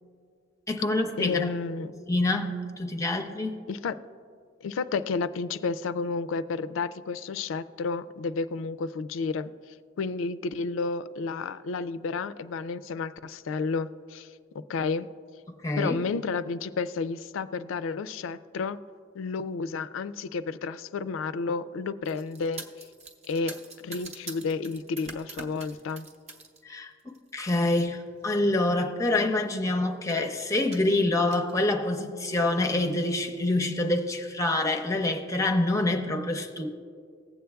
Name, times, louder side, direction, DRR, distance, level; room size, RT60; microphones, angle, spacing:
voice 1, 0.7-1.4 2.1-3.6 15.6-16.0 26.6-26.9 27.3-36.7, left 2 dB, 15° left, 3 dB, 0.5 m, -26 dB
voice 2, 1.2-1.9 3.7-3.9 4.6-9.5 10.0-14.3 14.7-15.1 15.8-18.8 19.1-22.6 23.2-26.1, left 4 dB, 90° left, 14 dB, 0.3 m, -31 dB
sound 1, 22.0-26.6 27.0-27.4 28.3-28.4 28.7-28.8 29.0-29.6 30.1-30.3 30.7-31.5, right 3 dB, 35° right, 0.7 m, -44 dB
19.5 x 7.6 x 2.3 m, 2.2 s
head